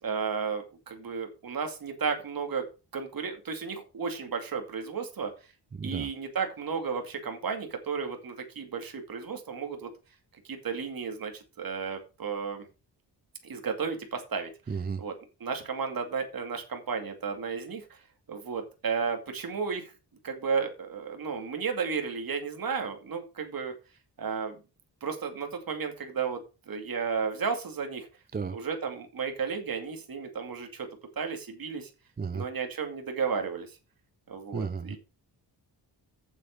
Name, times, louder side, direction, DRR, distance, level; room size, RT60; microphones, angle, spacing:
voice 1, 0.0-2.7 2.9-5.3 5.8-9.9 10.5-12.7 13.4-14.5 15.0-15.1 15.4-18.0 18.3-19.9 20.2-23.7 24.2-24.6 25.0-28.1 28.5-30.9 31.2-31.9 32.3-33.7 34.3-35.0, right 5 dB, 55° right, 2.5 m, -33 dB
voice 2, 5.7-6.1 14.7-15.0 28.3-28.6 32.2-32.4 34.5-35.0, right 5 dB, 20° right, 0.5 m, -33 dB
8.2 x 7.6 x 5.3 m
wide cardioid pair, 110°, 43 cm